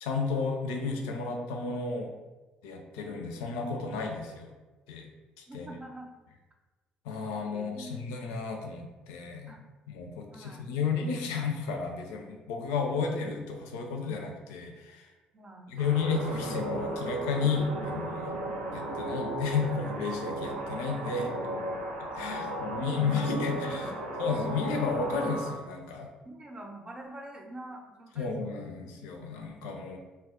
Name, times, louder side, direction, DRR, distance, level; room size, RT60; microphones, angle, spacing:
voice 1, 0.0-2.1 2.6-4.5 4.9-5.1 5.5-5.7 7.0-9.5 9.9-15.1 15.7-18.3 18.7-21.3 22.2-23.9 24.2-26.1 28.2-30.0, left 5 dB, 70° left, 2 dB, 0.4 m, -32 dB
voice 2, 5.5-6.1 7.3-8.1 9.5-9.6 10.3-10.7 15.3-15.7 22.2-24.1 26.3-28.7, right 1 dB, 20° right, 1 dB, 0.6 m, -46 dB
sound 1, 15.8-25.5, right 1 dB, 85° right, 0.4 m, -35 dB
2.2 x 2.1 x 3.7 m, 1.2 s
figure-of-eight pair, 45°, 4 cm